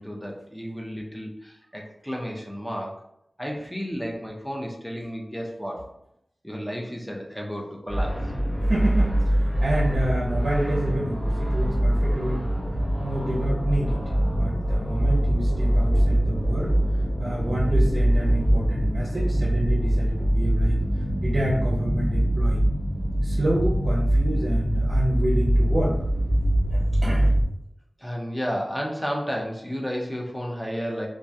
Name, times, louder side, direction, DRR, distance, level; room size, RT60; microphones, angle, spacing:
voice 1, 0.0-3.0 3.4-5.9 6.4-8.3 28.0-31.1, equal, 5° left, -1 dB, 0.6 m, -32 dB
sound 1, 7.9-27.4, right 1 dB, 70° left, 1.1 m, -23 dB
voice 2, 8.7-12.5 13.0-16.8 17.2-20.8 21.2-22.6 23.2-26.0 26.7-27.3, right 1 dB, 65° right, -5 dB, 0.5 m, -28 dB
2.2 x 2.2 x 2.7 m, 0.77 s
cardioid pair, 40°, 0 cm